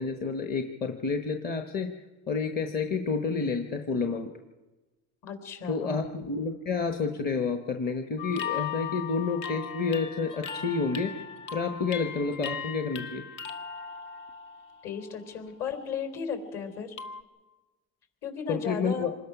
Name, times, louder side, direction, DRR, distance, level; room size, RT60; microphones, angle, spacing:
voice 1, 0.0-1.9 2.3-4.3 5.7-11.2 11.5-13.2 18.5-19.1, left 4 dB, 30° left, 5 dB, 1.2 m, -29 dB
voice 2, 5.2-6.1 14.8-17.0 18.2-19.1, left 6 dB, 50° left, 7 dB, 4.2 m, -35 dB
sound 1, 8.2-15.0 15.5-15.8 17.0-17.2, left 7 dB, 80° left, 1.8 m, -38 dB
26.5 x 20.5 x 6.0 m, 1.2 s
cardioid pair, 145°, 33 cm